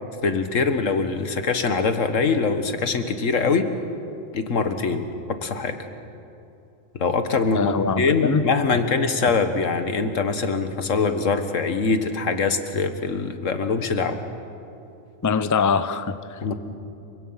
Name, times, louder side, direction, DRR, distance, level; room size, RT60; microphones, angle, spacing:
voice 1, 0.2-3.7 4.3-5.0 5.3-5.8 7.0-14.2 16.4-16.6, left 4 dB, 85° left, 8 dB, 1.8 m, -23 dB
voice 2, 7.5-8.5 15.2-16.4, left 5 dB, 25° left, 13 dB, 0.4 m, -23 dB
28.5 x 24.5 x 5.7 m, 2.7 s
omnidirectional pair, 1.3 m